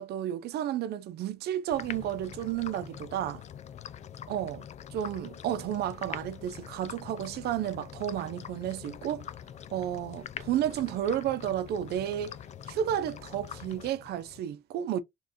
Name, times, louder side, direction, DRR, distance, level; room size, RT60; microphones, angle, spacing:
voice 1, 0.0-3.4 4.3-4.6 4.9-9.2 9.7-12.4 12.7-15.0, right 11 dB, 70° right, 0.7 m, -32 dB
sound 1, 1.7-14.4, left 9 dB, 45° left, 0.4 m, -44 dB
4.3 x 3.3 x 3.0 m
cardioid pair, 110°, 17 cm